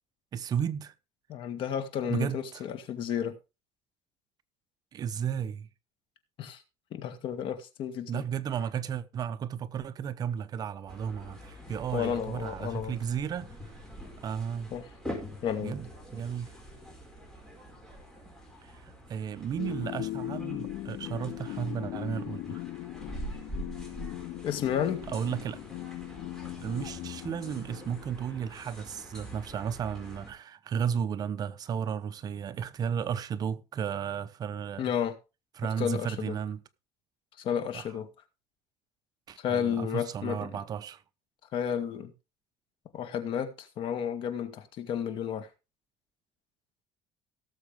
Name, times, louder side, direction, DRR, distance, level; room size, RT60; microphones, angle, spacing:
voice 1, 0.3-0.9 2.1-2.6 4.9-5.7 8.1-13.8 14.2-14.7 15.6-16.5 18.6-22.6 25.1-25.6 26.6-34.9 35.6-36.6 37.7-37.9 39.3-41.0, right 8 dB, 35° right, 0.7 m, -34 dB
voice 2, 1.3-3.4 6.4-6.6 6.9-8.2 11.9-13.0 14.7-14.8 15.4-15.8 24.4-25.0 34.8-35.1 35.8-36.4 37.4-38.1 39.4-40.5 41.5-42.1 42.9-45.5, left 8 dB, 55° left, 2.1 m, -32 dB
sound 1, 10.9-30.3, equal, 5° left, 4.6 m, -45 dB
sound 2, 19.6-28.3, left 16 dB, 70° left, 0.5 m, -39 dB
18.0 x 7.2 x 3.5 m
cardioid pair, 145°, 11 cm